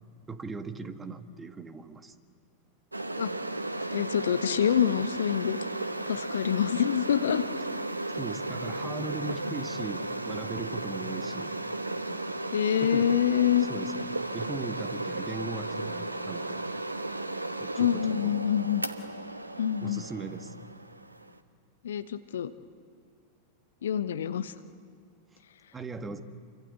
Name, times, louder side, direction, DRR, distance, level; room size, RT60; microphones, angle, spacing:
voice 1, 0.3-2.1 8.1-11.5 12.8-13.1 13.7-13.9 14.3-16.6 17.6-18.3 19.8-20.5 25.7-26.2, right 3 dB, 15° right, 9 dB, 1.8 m, -38 dB
sound 1, 2.9-21.4, right 2 dB, 80° right, 1.2 m, -35 dB
voice 2, 3.9-5.6 6.1-7.4 12.5-13.7 17.8-18.8 19.6-20.0 21.8-22.5 23.8-24.5, left 9 dB, 65° left, 12 dB, 1.0 m, -26 dB
28.0 x 24.5 x 8.4 m, 2.3 s
figure-of-eight pair, 90°, 0 cm